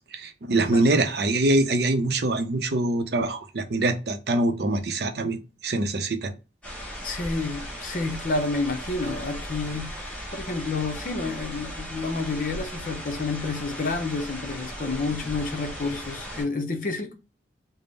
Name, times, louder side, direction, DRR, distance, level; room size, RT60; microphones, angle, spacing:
voice 1, 0.1-6.3, right 2 dB, 60° right, 0.5 m, -24 dB
sound 1, 6.6-16.4, equal, 5° left, 1.1 m, -37 dB
voice 2, 7.0-17.1, left 3 dB, 45° left, 0.6 m, -29 dB
3.5 x 2.0 x 3.9 m
head